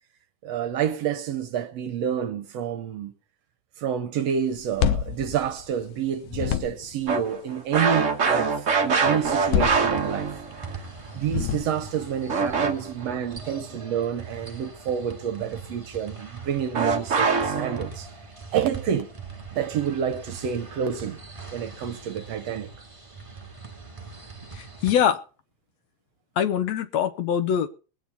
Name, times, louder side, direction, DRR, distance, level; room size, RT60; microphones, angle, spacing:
voice 1, 0.4-3.1 3.8-10.3 11.1-18.1 18.5-19.1 19.5-21.2 21.5-22.7, right 8 dB, 65° right, 1.9 m, -28 dB
sound 1, 4.5-6.0 6.3-7.1 9.2-10.5 11.2-12.0, left 9 dB, 90° left, 2.4 m, -28 dB
sound 2, 7.1-10.7 12.3-13.0 16.7-17.9, right 5 dB, 50° right, 0.9 m, -24 dB
sound 3, 9.0-24.9, right 4 dB, 15° right, 1.3 m, -42 dB
voice 2, 24.5-25.2 26.4-27.7, left 9 dB, 70° left, 1.8 m, -23 dB
21.5 x 9.3 x 4.2 m
omnidirectional pair, 3.5 m